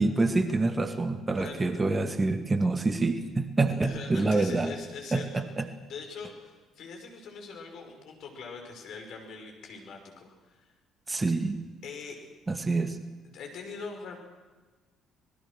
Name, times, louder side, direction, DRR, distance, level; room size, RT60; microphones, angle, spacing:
voice 1, 0.0-4.7 5.1-5.6 11.1-11.6 12.5-13.0, right 3 dB, 25° right, 9 dB, 2.1 m, -26 dB
voice 2, 1.3-1.7 3.7-5.4 5.9-10.7 11.8-12.2 13.2-14.2, left 5 dB, 60° left, 2 dB, 5.7 m, -42 dB
25.5 x 21.0 x 6.5 m, 1.3 s
figure-of-eight pair, 50°, 0 cm